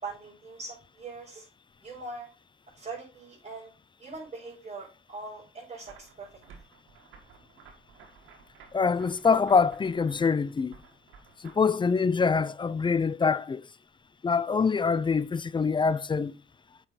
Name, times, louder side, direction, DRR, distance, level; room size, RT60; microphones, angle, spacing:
voice 1, 0.0-1.5 1.8-2.3 2.8-3.7 4.0-6.3, right 3 dB, 35° right, 5.3 m, -41 dB
sound 1, 5.8-11.5, right 6 dB, 80° right, 1.8 m, -54 dB
voice 2, 8.7-10.8 11.4-13.6 14.2-16.3, left 5 dB, 25° left, 0.4 m, -25 dB
8.5 x 5.6 x 4.0 m
cardioid pair, 90°, 20 cm